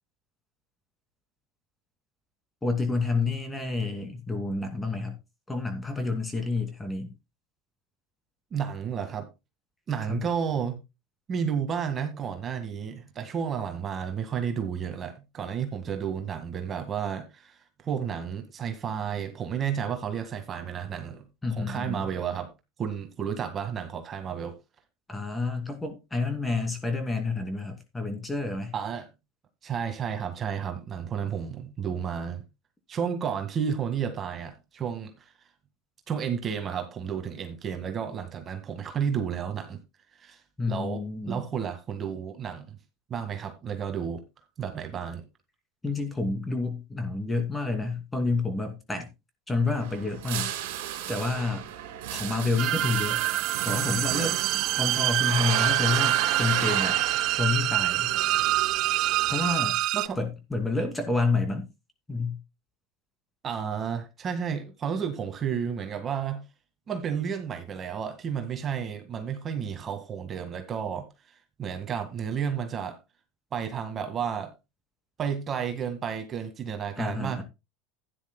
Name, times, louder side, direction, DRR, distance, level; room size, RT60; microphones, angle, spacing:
voice 1, 2.6-5.2 5.5-7.1 10.1-10.2 21.4-22.1 25.1-28.7 40.6-41.5 45.8-49.1 49.5-50.5 50.8-51.6 52.1-53.2 53.6-54.4 54.7-57.0 57.4-58.1 59.3-59.8 60.2-61.7 62.1-62.4 77.0-77.4, left 3 dB, 10° left, 2.5 m, -29 dB
voice 2, 8.5-9.3 9.9-10.8 11.3-21.2 21.6-22.5 22.8-24.6 28.7-29.1 29.6-32.4 32.9-35.1 36.1-39.8 40.2-40.4 40.7-42.8 43.1-44.2 44.6-45.2 59.9-60.2 63.4-66.4 66.9-71.1 71.6-73.0 73.5-74.5 75.2-77.4, right 7 dB, 35° right, 1.7 m, -32 dB
sound 1, 49.7-59.5, right 10 dB, 80° right, 2.4 m, -34 dB
sound 2, 52.6-60.1, right 15 dB, 55° right, 0.4 m, -26 dB
15.0 x 10.0 x 2.2 m
supercardioid pair, 120°, 0 cm